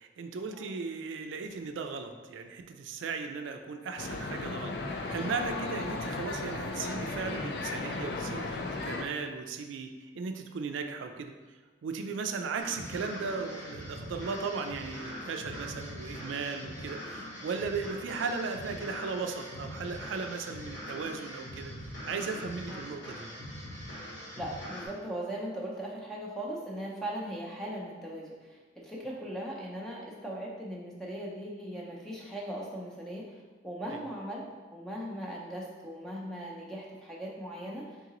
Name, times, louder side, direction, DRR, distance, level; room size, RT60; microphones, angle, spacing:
voice 1, 0.0-11.3 11.8-21.7 22.0-23.3, right 4 dB, 85° right, 6 dB, 0.3 m, -36 dB
sound 1, 4.0-9.0, left 3 dB, 60° left, 0.4 m, -35 dB
sound 2, 12.6-24.9, equal, 85° left, 1.4 m, -42 dB
voice 2, 24.4-38.0, right 1 dB, 5° left, -3 dB, 0.5 m, -39 dB
3.7 x 3.7 x 2.9 m, 1.3 s
head